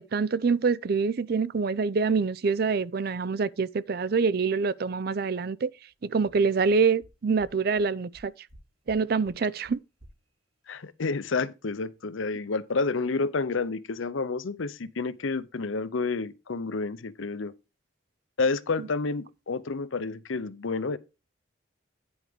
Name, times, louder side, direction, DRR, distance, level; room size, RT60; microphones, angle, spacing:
voice 1, 0.0-5.7 6.0-8.3 8.9-9.8, right 5 dB, 50° right, 0.4 m, -25 dB
sound 1, 5.9-6.0 6.3-6.4 6.6-6.7 7.0-7.1 7.4-7.5 7.8-7.9 8.1-8.6 8.9-9.0 9.2-9.3 9.6-9.7 10.0-10.1, right 1 dB, 90° right, 4.8 m, -52 dB
voice 2, 10.7-17.5 18.4-21.0, left 4 dB, 85° left, 0.7 m, -29 dB
9.8 x 4.8 x 5.2 m
head